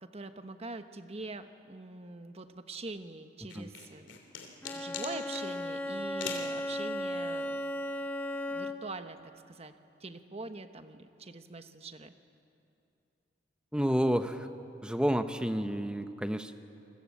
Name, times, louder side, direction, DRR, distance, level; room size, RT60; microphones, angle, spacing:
voice 1, 0.0-4.2 4.7-7.6 8.5-9.2 9.5-9.7 10.0-12.1, right 3 dB, 35° right, 9 dB, 1.1 m, -43 dB
sound 1, 3.5-5.5 6.2-6.5, left 6 dB, 80° left, 3.0 m, -41 dB
Bowed string instrument, 4.6-9.0, left 1 dB, 10° left, 1.3 m, -36 dB
voice 2, 13.7-14.5 14.8-16.5, equal, 5° right, 9 dB, 0.9 m, -30 dB
28.0 x 20.5 x 8.6 m, 2.7 s
head